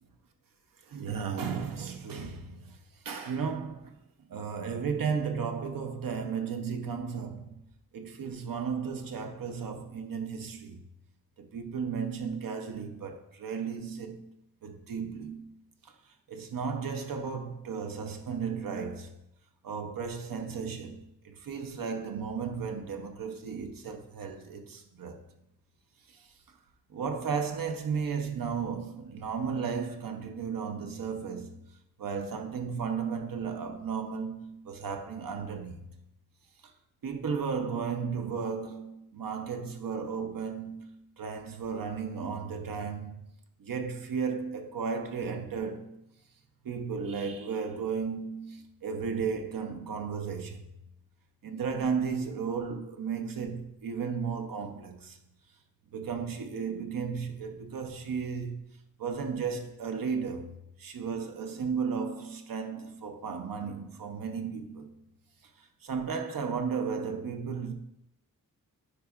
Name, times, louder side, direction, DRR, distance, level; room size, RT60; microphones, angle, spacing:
voice 1, 0.9-2.8 3.0-3.9 4.3-7.6 7.9-10.8 11.4-14.3 14.6-15.5 16.3-19.1 19.6-25.2 26.1-26.2 26.9-31.6 32.0-35.8 37.0-43.2 43.6-46.0 46.6-50.6 51.4-55.2 55.9-58.6 59.0-65.0 65.8-67.7, right 6 dB, 75° right, 0.7 m, -34 dB
9.4 x 4.8 x 2.4 m
wide cardioid pair, 145°, 34 cm